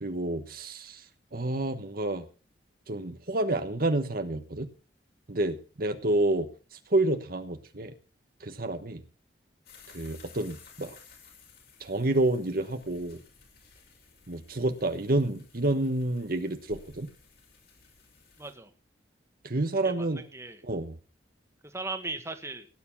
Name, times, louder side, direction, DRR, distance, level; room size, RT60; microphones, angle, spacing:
voice 1, 0.0-2.2 2.9-4.7 5.3-7.9 8.4-9.0 9.9-11.0 11.8-13.2 14.3-17.1 19.4-20.2 20.6-21.0, right 2 dB, 55° right, 8 dB, 1.2 m, -29 dB
sound 1, 9.7-18.5, left 5 dB, 60° left, 6.4 m, -56 dB
voice 2, 18.4-18.7 19.8-20.6 21.6-22.7, right 3 dB, 15° right, 7 dB, 1.8 m, -38 dB
17.5 x 9.6 x 5.9 m, 0.37 s
head